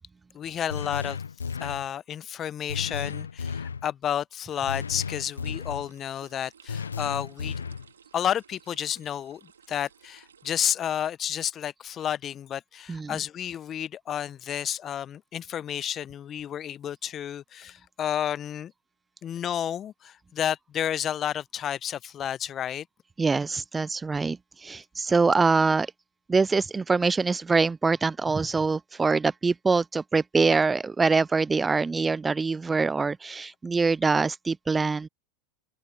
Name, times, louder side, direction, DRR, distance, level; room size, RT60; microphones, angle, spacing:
voice 1, 0.3-1.2 1.6-7.6 8.1-18.7 19.2-22.9, left 10 dB, 35° left, 0.8 m, -31 dB
sound 1, 0.7-1.9 2.7-3.9 4.7-5.9 6.7-7.9, left 6 dB, 90° left, 0.5 m, -34 dB
sound 2, 4.5-10.5, right 7 dB, 85° right, 2.2 m, -57 dB
voice 2, 23.2-25.9 26.3-35.1, right 4 dB, 15° right, 0.3 m, -24 dB
open air
hypercardioid pair, 90°, 0 cm